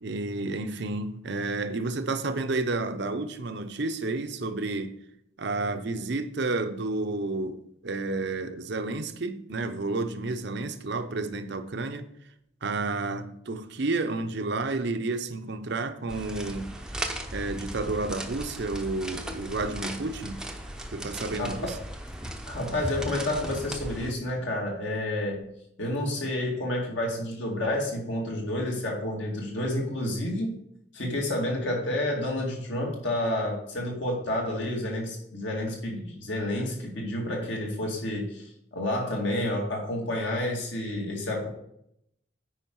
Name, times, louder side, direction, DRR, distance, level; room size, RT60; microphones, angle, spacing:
voice 1, 0.0-4.9 5.4-12.1 12.6-16.7 17.3-20.4 20.9-21.8, right 3 dB, 55° right, 0.7 m, -31 dB
sound 1, 16.1-24.1, right 1 dB, 5° right, 0.7 m, -37 dB
voice 2, 21.4-21.8 22.5-25.4 25.8-30.6 30.9-38.5 38.7-41.5, left 1 dB, 65° left, 2.4 m, -30 dB
9.1 x 5.1 x 4.6 m
head